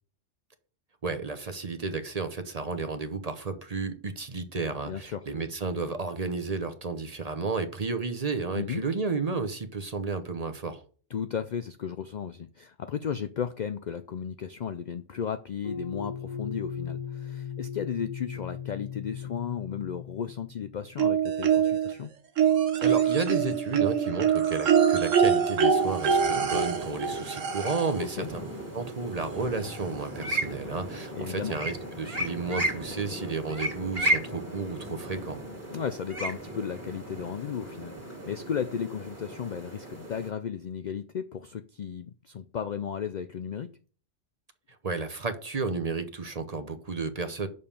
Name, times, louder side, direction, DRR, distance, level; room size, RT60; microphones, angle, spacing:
voice 1, 1.0-10.8 22.8-28.4 28.7-35.4 44.8-47.5, right 4 dB, 35° right, 0.8 m, -32 dB
voice 2, 4.7-5.2 8.5-8.8 11.1-22.1 28.0-28.3 31.1-31.6 35.7-37.9 38.3-43.7, left 7 dB, 65° left, 0.4 m, -34 dB
sound 1, 15.6-20.9, left 7 dB, 40° left, 1.0 m, -38 dB
sound 2, 21.0-21.9 22.4-28.1 29.3-29.4 29.7-29.8, right 7 dB, 85° right, 1.3 m, -24 dB
sound 3, 25.7-40.3, right 1 dB, 10° right, 2.0 m, -35 dB
6.7 x 5.5 x 6.8 m
omnidirectional pair, 1.3 m